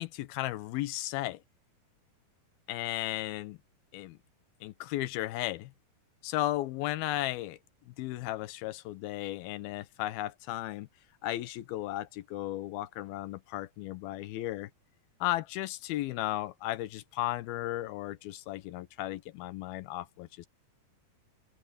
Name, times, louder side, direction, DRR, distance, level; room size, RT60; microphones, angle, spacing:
voice 1, 0.0-1.4 2.7-3.6 3.9-4.2 4.6-5.7 6.2-7.6 7.9-10.9 11.2-14.7 15.2-20.5, left 15 dB, 80° left, 2.7 m, -35 dB
open air
omnidirectional pair, 4.5 m